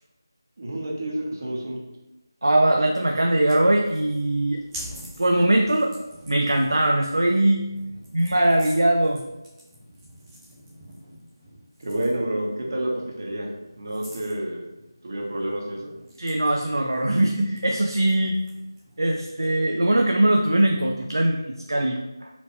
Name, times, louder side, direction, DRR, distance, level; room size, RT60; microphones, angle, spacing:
voice 1, 0.6-1.8 11.8-14.7 15.0-15.9, right 1 dB, 45° right, -1 dB, 1.0 m, -29 dB
voice 2, 2.4-4.6 5.2-6.0 6.3-7.6 8.1-9.2 16.2-18.3 19.0-22.3, right 1 dB, 75° right, 1 dB, 0.4 m, -21 dB
sound 1, 3.0-19.6, equal, 5° right, 0.6 m, -47 dB
4.2 x 2.8 x 2.7 m, 0.98 s
figure-of-eight pair, 165°, 2 cm